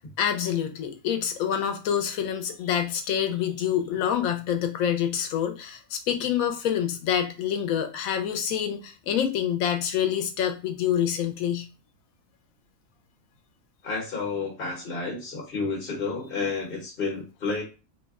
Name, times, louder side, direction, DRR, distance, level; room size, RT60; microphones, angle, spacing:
voice 1, 0.2-11.7, left 9 dB, 90° left, 7 dB, 1.0 m, -27 dB
voice 2, 13.8-17.6, left 4 dB, 45° left, -3 dB, 1.1 m, -30 dB
3.2 x 2.1 x 3.5 m, 0.31 s
omnidirectional pair, 1.4 m